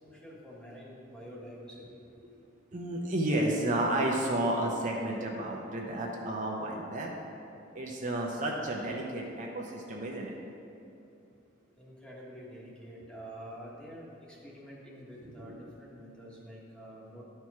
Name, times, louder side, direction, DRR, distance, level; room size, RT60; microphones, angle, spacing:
voice 1, 0.0-2.0 11.8-17.2, equal, 5° left, -5 dB, 1.3 m, -47 dB
voice 2, 2.7-7.1 7.7-10.3 15.2-15.6, right 1 dB, 45° right, -1 dB, 0.7 m, -32 dB
11.0 x 4.5 x 4.7 m, 2.7 s
head